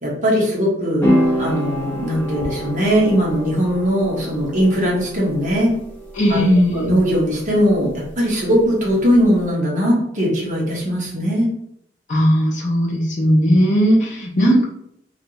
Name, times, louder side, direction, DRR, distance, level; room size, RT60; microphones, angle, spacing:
voice 1, 0.0-1.1 1.4-5.7 6.3-11.5, equal, 45° right, -4 dB, 1.1 m, -19 dB
sound 1, 1.0-9.4, equal, 10° left, 0.9 m, -27 dB
voice 2, 6.1-6.9 12.1-14.6, equal, 40° left, -3 dB, 0.6 m, -17 dB
3.2 x 2.5 x 2.9 m, 0.72 s
head